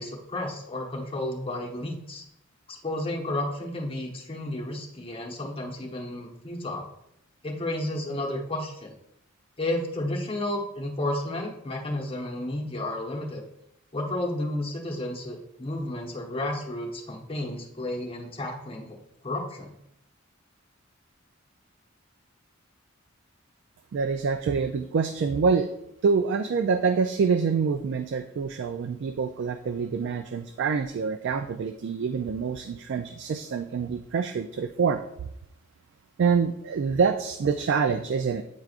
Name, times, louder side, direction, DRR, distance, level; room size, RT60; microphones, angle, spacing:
voice 1, 0.0-2.2 2.7-6.9 7.4-8.9 9.6-13.4 13.9-19.0 19.2-19.8, left 1 dB, 25° left, -1 dB, 1.1 m, -32 dB
voice 2, 23.9-25.7 26.0-35.0 36.2-38.4, right 5 dB, 60° right, 9 dB, 0.3 m, -26 dB
9.0 x 4.7 x 2.5 m, 0.78 s
head